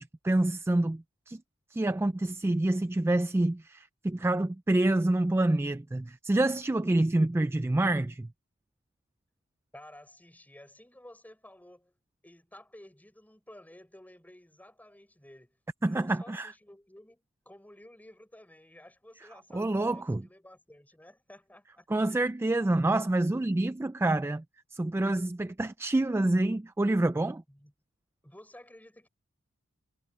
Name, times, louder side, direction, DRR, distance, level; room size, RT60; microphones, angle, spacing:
voice 1, 0.0-1.4 1.7-8.3 15.8-16.5 19.5-20.2 21.9-24.4 24.7-27.4, right 2 dB, 10° right, 0.3 m, -27 dB
voice 2, 9.7-12.0 12.2-21.9 22.1-22.3 27.5-27.7 28.2-29.1, left 1 dB, 10° left, 5.3 m, -53 dB
head